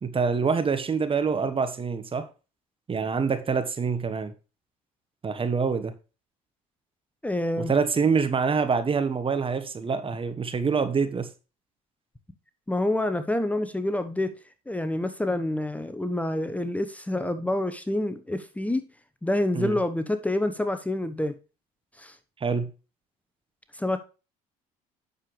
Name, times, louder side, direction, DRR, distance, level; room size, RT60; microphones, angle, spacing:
voice 1, 0.0-2.3 2.9-4.3 5.2-5.9 7.6-11.3 19.5-19.8 22.4-22.7, right 5 dB, 30° right, 1.3 m, -26 dB
voice 2, 7.2-7.7 12.7-14.3 14.7-18.8 19.2-21.3 22.0-22.2 23.7-24.0, left 1 dB, 10° left, 1.0 m, -27 dB
9.1 x 6.8 x 3.2 m
hypercardioid pair, 70°, 18 cm